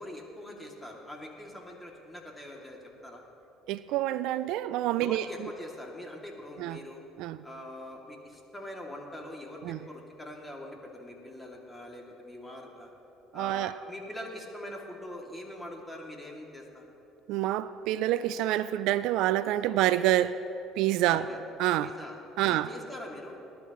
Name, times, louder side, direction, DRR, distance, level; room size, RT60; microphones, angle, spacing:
voice 1, 0.0-3.2 5.0-7.1 7.4-12.9 13.3-16.9 21.1-21.4 21.8-23.4, left 1 dB, 10° left, -1 dB, 2.4 m, -43 dB
voice 2, 3.7-5.3 6.6-6.8 7.2-7.4 9.6-9.8 13.3-13.7 17.3-20.3 20.8-21.2 21.6-21.9 22.4-22.7, right 14 dB, 75° right, 15 dB, 0.3 m, -27 dB
20.0 x 11.5 x 3.0 m, 2.9 s
supercardioid pair, 85°, 0 cm